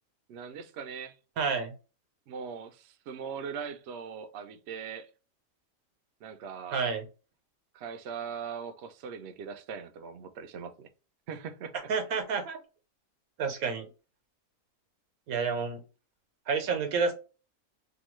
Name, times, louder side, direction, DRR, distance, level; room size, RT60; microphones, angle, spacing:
voice 1, 0.3-1.2 2.3-5.1 6.2-6.8 7.7-10.9 11.3-11.7, right 6 dB, 65° right, 0.7 m, -40 dB
voice 2, 1.4-1.7 6.7-7.1 11.9-12.6 13.4-13.9 15.3-15.8 16.5-17.1, right 5 dB, 85° right, 1.2 m, -29 dB
2.9 x 2.3 x 3.0 m
omnidirectional pair, 1.5 m